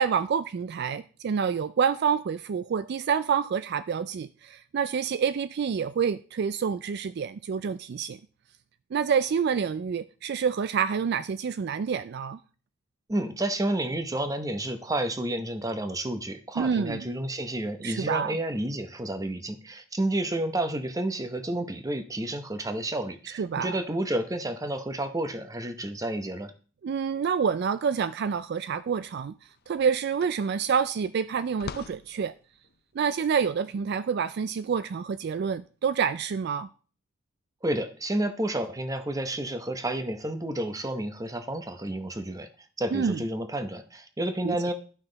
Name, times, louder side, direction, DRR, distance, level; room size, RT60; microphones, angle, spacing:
voice 1, 0.0-8.2 8.9-12.4 16.6-17.1 17.8-18.4 23.3-23.8 26.8-29.3 29.7-32.3 33.0-36.7 42.9-43.2 44.4-44.6, right 6 dB, 55° right, 0.3 m, -27 dB
voice 2, 13.1-26.5 37.6-42.5 42.8-44.7, right 1 dB, 20° right, 0.9 m, -30 dB
sound 1, 29.1-35.6, left 5 dB, 55° left, 0.5 m, -47 dB
11.5 x 5.8 x 3.9 m
head